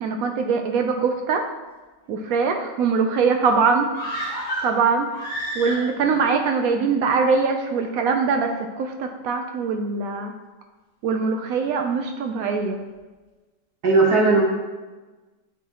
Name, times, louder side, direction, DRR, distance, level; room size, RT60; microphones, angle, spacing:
voice 1, 0.0-1.5 2.1-3.9 4.6-5.1 5.5-10.3 11.0-12.8, right 5 dB, 80° right, 5 dB, 0.8 m, -22 dB
sound 1, 3.9-6.2 6.5-6.6, right 1 dB, 45° left, 1.9 m, -30 dB
voice 2, 13.8-14.4, right 3 dB, 60° right, -2 dB, 1.5 m, -18 dB
8.2 x 4.0 x 2.9 m, 1.2 s
omnidirectional pair, 2.0 m